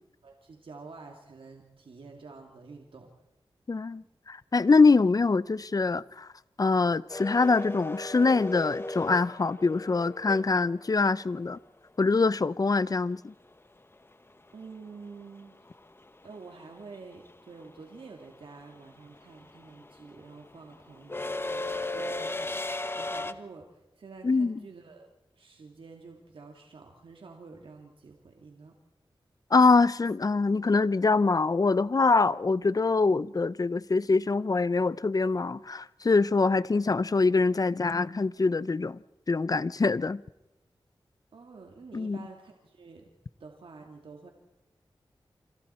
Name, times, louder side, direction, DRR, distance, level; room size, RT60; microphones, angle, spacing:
voice 1, 0.2-3.1 14.5-15.7 16.2-25.1 25.3-28.8 41.3-43.1 43.4-44.3, right 4 dB, 75° right, 2.4 m, -48 dB
voice 2, 3.7-6.3 6.6-11.6 12.0-13.3 24.2-24.6 29.5-39.0 39.3-40.2 41.9-42.2, left 4 dB, 40° left, 0.7 m, -24 dB
sound 1, 7.1-11.2 13.6-13.7 15.0-15.3 15.5-23.3, left 2 dB, 25° left, 1.1 m, -36 dB
28.0 x 26.0 x 4.4 m
cardioid pair, 55°, 9 cm